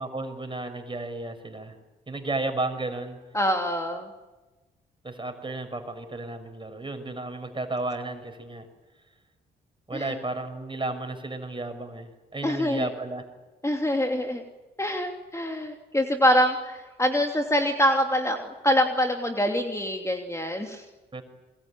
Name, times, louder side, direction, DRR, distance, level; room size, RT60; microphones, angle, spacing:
voice 1, 0.0-1.7 2.1-3.2 5.0-8.7 9.9-13.2 21.1-21.2, right 2 dB, 25° right, 7 dB, 6.2 m, -33 dB
voice 2, 3.3-4.1 9.9-10.2 12.4-12.9 13.6-14.4 14.8-20.8, equal, 15° left, 3 dB, 3.0 m, -25 dB
27.5 x 23.0 x 8.9 m, 1.2 s
hypercardioid pair, 45°, 21 cm